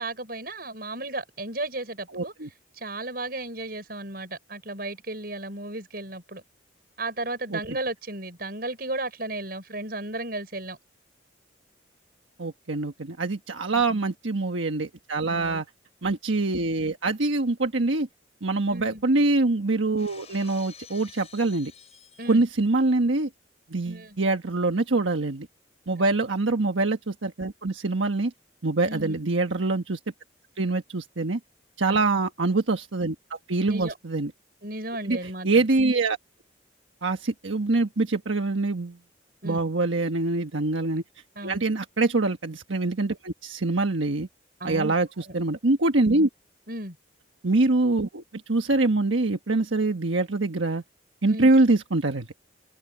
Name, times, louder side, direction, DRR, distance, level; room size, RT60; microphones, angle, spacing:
voice 1, 0.0-2.3 2.8-6.4 7.0-10.8 13.7-14.0 15.3-15.6 18.7-19.0 22.2-22.4 23.9-24.2 26.0-26.1 28.9-29.2 31.9-32.0 33.6-33.9 34.6-35.6 39.4-39.6 41.4-41.6 44.6-45.0 46.7-47.0 51.3-51.5, right 2 dB, 50° right, 6.1 m, -34 dB
voice 2, 2.1-2.5 7.5-7.6 12.4-15.6 16.0-18.1 18.4-21.7 22.3-23.3 23.7-25.5 25.9-28.3 28.6-30.0 30.6-31.4 31.8-34.3 35.1-35.2 35.4-36.2 37.0-39.0 39.4-41.0 41.4-44.3 44.6-46.3 47.4-48.2 48.5-50.8 51.2-52.3, right 2 dB, 85° right, 1.3 m, -24 dB
Shatter, 20.0-22.7, left 7 dB, 35° left, 7.4 m, -50 dB
open air
head